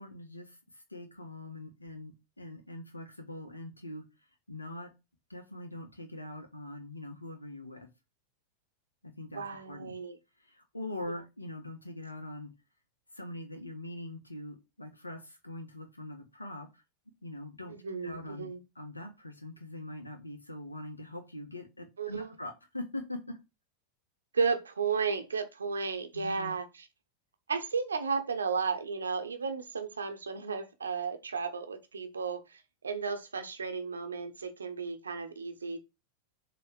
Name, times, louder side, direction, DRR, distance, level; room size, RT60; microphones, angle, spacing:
voice 1, 0.0-4.0 4.5-4.9 5.3-7.9 9.0-9.9 10.4-12.5 13.1-16.8 17.2-23.4 26.1-26.5, left 1 dB, 80° left, 1.4 m, -43 dB
voice 2, 9.3-10.2 17.7-18.6 22.0-22.3 24.3-26.6 27.5-32.4 32.8-35.8, right 5 dB, 70° right, 1.2 m, -33 dB
6.9 x 3.4 x 5.0 m
figure-of-eight pair, 90°, 0 cm